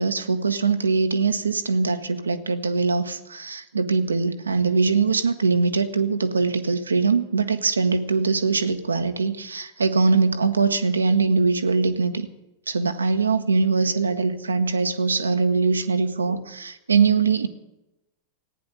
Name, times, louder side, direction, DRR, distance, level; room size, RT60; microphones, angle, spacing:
voice 1, 0.0-12.3 12.7-17.5, right 4 dB, 75° right, 9 dB, 1.0 m, -22 dB
15.0 x 9.8 x 9.3 m, 0.93 s
figure-of-eight pair, 90°, 0 cm